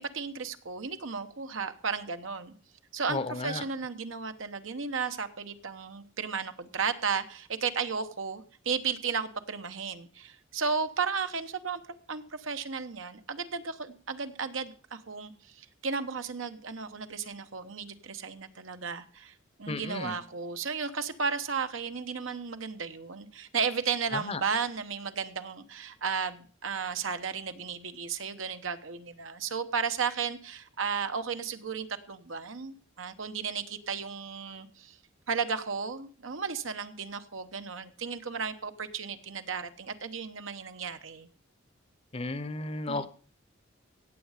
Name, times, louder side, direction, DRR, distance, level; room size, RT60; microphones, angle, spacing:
voice 1, 0.0-2.5 2.9-11.8 12.1-19.3 19.6-35.0 35.3-41.3 42.9-43.1, right 5 dB, 75° right, 9 dB, 1.0 m, -34 dB
voice 2, 3.1-3.6 19.7-20.1 24.1-24.4 42.1-43.1, left 2 dB, 30° left, 14 dB, 0.7 m, -33 dB
17.0 x 7.4 x 5.0 m, 0.41 s
head